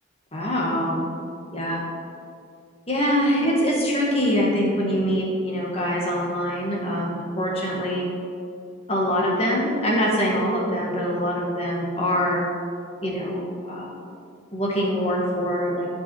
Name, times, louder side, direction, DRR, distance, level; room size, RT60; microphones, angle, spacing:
voice 1, 0.3-1.0 1.5-1.8 2.9-8.1 8.9-12.4 13.0-13.9 14.5-15.9, equal, 30° left, -3 dB, 1.7 m, -24 dB
11.5 x 5.5 x 4.6 m, 2.3 s
head